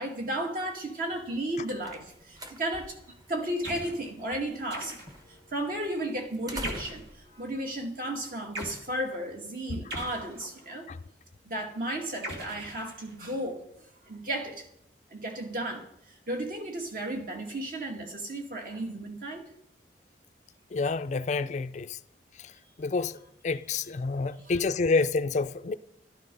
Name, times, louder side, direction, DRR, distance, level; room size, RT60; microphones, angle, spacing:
voice 1, 0.0-5.0 5.5-10.9 11.4-13.6 14.0-14.6 15.1-15.9 16.3-19.5 24.4-24.6, right 1 dB, 50° right, 2.4 m, -34 dB
sound 1, 1.2-8.6, equal, 20° right, 1.1 m, -47 dB
sound 2, 3.6-4.0 4.7-5.3 6.6-7.1 8.5-8.8 9.9-10.8 12.2-13.3, right 1 dB, 70° right, 2.9 m, -40 dB
voice 2, 20.7-22.0 22.8-23.1 23.4-25.7, left 4 dB, 40° left, 0.4 m, -28 dB
12.5 x 12.5 x 5.5 m
head